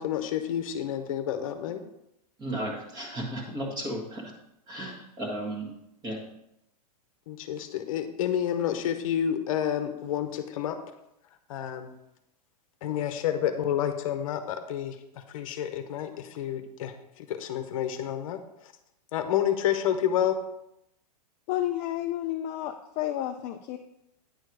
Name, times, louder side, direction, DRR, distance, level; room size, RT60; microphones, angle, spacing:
voice 1, 0.0-1.8 7.3-10.8 11.5-11.9 12.8-18.7 19.1-20.4, left 10 dB, 55° left, 8 dB, 0.9 m, -29 dB
voice 2, 2.4-4.3 4.7-5.8 6.0-6.2, right 1 dB, 20° right, 1 dB, 1.6 m, -34 dB
voice 3, 21.5-23.8, left 13 dB, 30° left, 6 dB, 0.4 m, -31 dB
9.5 x 4.6 x 4.7 m, 0.83 s
hypercardioid pair, 150°, 21 cm